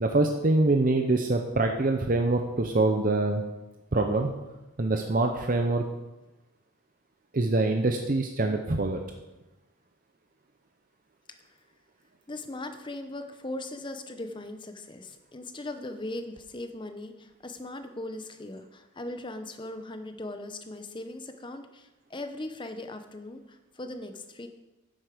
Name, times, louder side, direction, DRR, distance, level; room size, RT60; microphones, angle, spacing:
voice 1, 0.0-3.4 3.9-4.3 4.8-5.8 7.3-9.0, right 2 dB, 40° right, 4 dB, 0.7 m, -24 dB
voice 2, 12.3-24.5, left 1 dB, 20° left, 7 dB, 0.8 m, -39 dB
10.5 x 7.9 x 5.1 m, 1.0 s
head